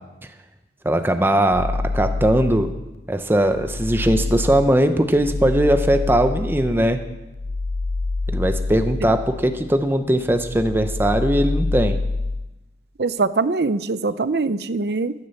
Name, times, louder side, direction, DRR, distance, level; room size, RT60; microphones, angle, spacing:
voice 1, 0.8-2.7 3.1-7.0 8.3-12.0, right 1 dB, 15° right, 8 dB, 0.7 m, -19 dB
sound 1, 1.5-2.9 3.3-9.9 10.2-12.5, left 3 dB, 70° left, 0.6 m, -27 dB
voice 2, 13.0-15.1, right 3 dB, 65° right, 15 dB, 0.6 m, -22 dB
14.0 x 9.8 x 7.0 m, 1.0 s
head